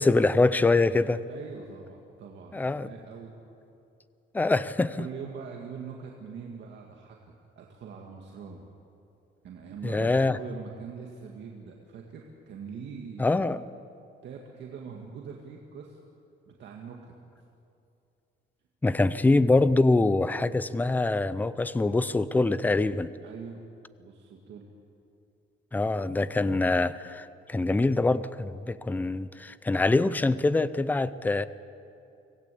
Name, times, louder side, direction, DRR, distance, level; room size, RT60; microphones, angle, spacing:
voice 1, 0.0-1.2 2.5-2.9 4.3-5.0 9.8-10.4 13.2-13.7 18.8-23.1 25.7-31.5, left 2 dB, 10° left, 15 dB, 0.5 m, -24 dB
voice 2, 1.3-3.4 5.0-8.7 9.4-13.4 14.2-16.0 16.5-17.1 23.2-23.6 24.0-24.7, right 6 dB, 60° right, 0 dB, 2.0 m, -43 dB
25.5 x 17.5 x 8.5 m, 2.7 s
cardioid pair, 180°, 21 cm